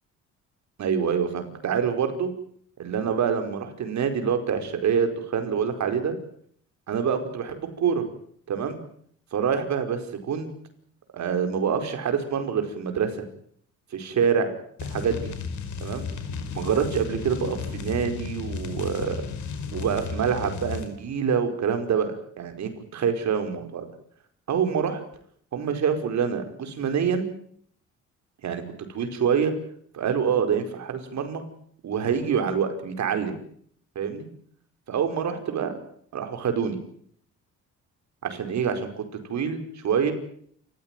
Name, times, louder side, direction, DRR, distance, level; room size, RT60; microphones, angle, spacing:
voice 1, 0.8-2.3 2.8-6.1 6.9-8.1 8.5-8.8 9.3-10.5 11.1-13.2 13.9-14.5 14.9-15.3 15.8-16.1 16.5-19.2 19.7-23.9 24.5-25.0 25.5-27.3 28.4-28.6 28.9-29.5 29.9-31.4 31.8-33.4 33.9-34.3 34.9-35.7 36.1-36.8 38.2-39.0 39.3-40.1, right 7 dB, 65° right, 7 dB, 5.0 m, -26 dB
sound 1, 14.8-20.9, left 5 dB, 70° left, 4.8 m, -34 dB
28.5 x 15.5 x 9.2 m, 0.64 s
cardioid pair, 90°, 30 cm